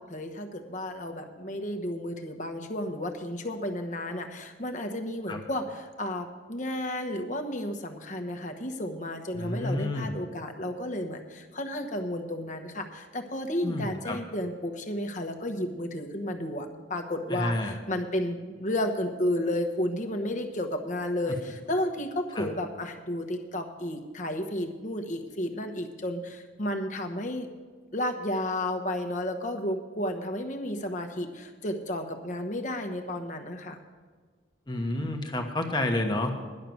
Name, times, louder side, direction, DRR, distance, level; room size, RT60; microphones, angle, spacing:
voice 1, 0.1-27.5 27.9-33.8, left 1 dB, 40° left, 4 dB, 1.1 m, -32 dB
voice 2, 9.3-10.2 13.6-14.2 17.3-17.8 22.4-22.5 34.7-36.4, left 1 dB, 25° left, 4 dB, 1.1 m, -30 dB
11.0 x 6.6 x 9.1 m, 1.5 s
head